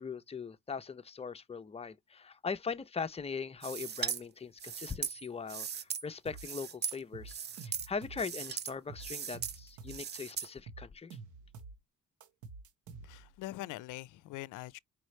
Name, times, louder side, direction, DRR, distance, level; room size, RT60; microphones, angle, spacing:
voice 1, 0.0-11.2, left 5 dB, 20° left, 0.6 m, -40 dB
sound 1, 3.6-4.2 4.6-6.0 6.3-7.0 7.3-7.9 8.1-8.7 9.0-9.6 9.9-10.5, right 7 dB, 35° right, 0.5 m, -38 dB
sound 2, 6.3-6.5 6.9-8.3 8.7-10.0 10.4-11.8 12.2-13.4, right 4 dB, 75° right, 1.1 m, -49 dB
voice 2, 13.0-14.8, left 17 dB, 85° left, 0.5 m, -43 dB
4.9 x 3.0 x 3.1 m
cardioid pair, 90°, 30 cm